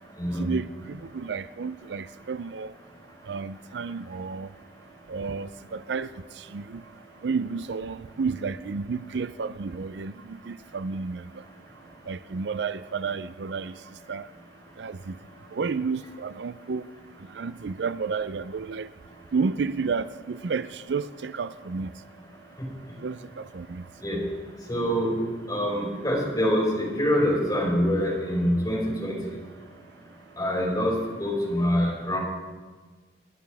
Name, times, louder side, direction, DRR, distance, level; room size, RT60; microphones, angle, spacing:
voice 1, 0.4-2.7 3.3-4.5 5.1-6.1 6.5-6.8 7.2-11.2 12.1-13.7 14.1-14.3 14.8-15.2 15.5-16.8 17.3-18.9 19.3-21.9 23.0-23.8, right 5 dB, 75° right, 0.5 m, -31 dB
voice 2, 24.7-25.2 25.5-29.2 30.4-32.2, equal, 20° left, 5.6 m, -25 dB
27.0 x 11.0 x 3.5 m
head